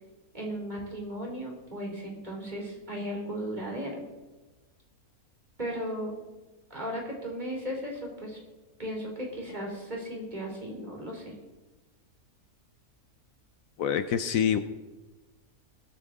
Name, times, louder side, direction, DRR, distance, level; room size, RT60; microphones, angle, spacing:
voice 1, 0.3-4.0 5.6-6.2 6.7-8.4 8.8-11.3, equal, 30° right, -1 dB, 3.2 m, -36 dB
voice 2, 13.8-14.6, left 8 dB, 70° left, 10 dB, 1.1 m, -26 dB
21.5 x 9.1 x 3.6 m, 1.2 s
omnidirectional pair, 1.5 m